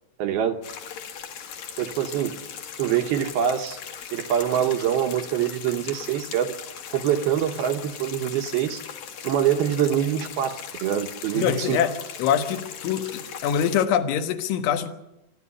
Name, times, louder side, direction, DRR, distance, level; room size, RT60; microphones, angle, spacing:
voice 1, 0.2-0.6 1.8-2.4 2.8-3.8 4.1-6.6 6.9-8.8 9.2-10.5 10.8-11.8, right 9 dB, 75° right, 6 dB, 2.4 m, -24 dB
sound 1, 0.6-13.8, left 8 dB, 55° left, 2.9 m, -39 dB
voice 2, 11.4-11.9 12.2-14.9, left 8 dB, 75° left, 8 dB, 3.7 m, -24 dB
25.5 x 13.0 x 9.8 m, 0.90 s
omnidirectional pair, 5.7 m